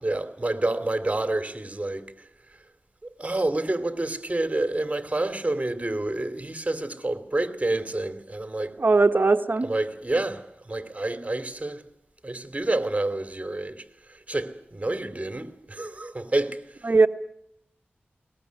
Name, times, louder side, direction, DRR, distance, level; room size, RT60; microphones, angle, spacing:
voice 1, 0.0-2.0 3.0-8.8 9.6-11.8 12.2-16.9, right 2 dB, 35° right, 2.7 m, -28 dB
voice 2, 8.8-9.7 16.9-17.1, right 3 dB, 55° right, 1.3 m, -19 dB
21.5 x 20.5 x 9.5 m
wide cardioid pair, 70°, 4 cm